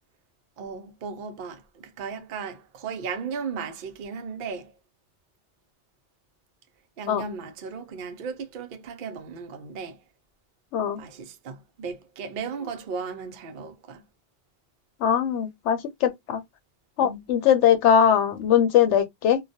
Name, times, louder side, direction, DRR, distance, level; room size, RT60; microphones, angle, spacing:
voice 1, 0.6-4.7 7.0-10.0 11.0-14.0 17.0-17.2, right 5 dB, 60° right, 0.6 m, -36 dB
voice 2, 15.0-16.4 17.0-19.4, left 9 dB, 80° left, 0.9 m, -21 dB
2.3 x 2.1 x 2.6 m
omnidirectional pair, 1.2 m